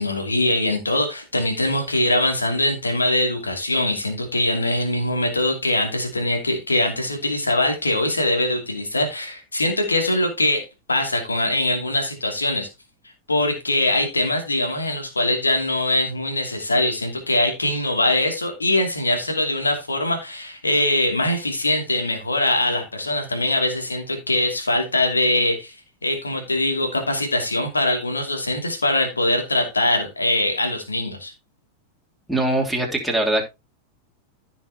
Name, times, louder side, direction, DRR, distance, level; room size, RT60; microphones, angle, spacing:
voice 1, 0.0-12.7 13.3-25.7 26.0-31.3, left 1 dB, 80° left, 3 dB, 2.5 m, -22 dB
voice 2, 32.3-33.4, right 1 dB, ahead, -1 dB, 2.9 m, -22 dB
15.5 x 5.9 x 2.9 m, 0.24 s
figure-of-eight pair, 90°, 0 cm